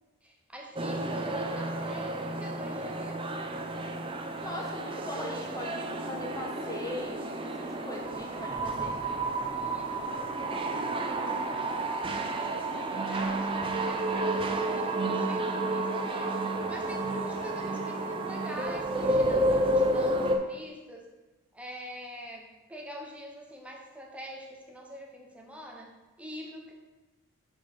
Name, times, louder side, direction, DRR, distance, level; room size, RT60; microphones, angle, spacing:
voice 1, 0.2-3.3 9.4-12.4 12.7-16.3 16.7-21.1 21.5-26.7, equal, 5° right, 0 dB, 0.8 m, -45 dB
sound 1, 0.8-20.4, right 2 dB, 25° right, 0.4 m, -31 dB
voice 2, 4.4-9.0, left 1 dB, 15° left, 0 dB, 0.9 m, -39 dB
6.4 x 4.3 x 4.4 m, 1.1 s
head